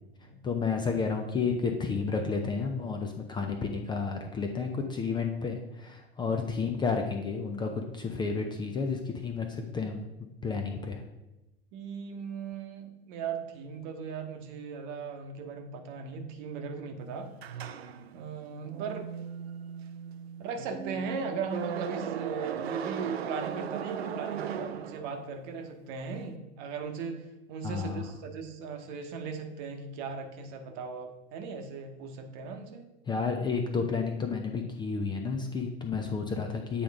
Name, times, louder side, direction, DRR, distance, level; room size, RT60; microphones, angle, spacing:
voice 1, 0.4-10.0 10.4-11.0 27.6-28.1 33.1-36.8, left 5 dB, 15° left, 4 dB, 0.5 m, -31 dB
voice 2, 11.7-17.3 18.1-19.1 20.4-32.9, right 5 dB, 45° right, 5 dB, 1.0 m, -38 dB
sound 1, 17.4-25.5, right 8 dB, 75° right, 0.5 m, -37 dB
8.4 x 3.6 x 3.6 m, 0.97 s
figure-of-eight pair, 90°, 32 cm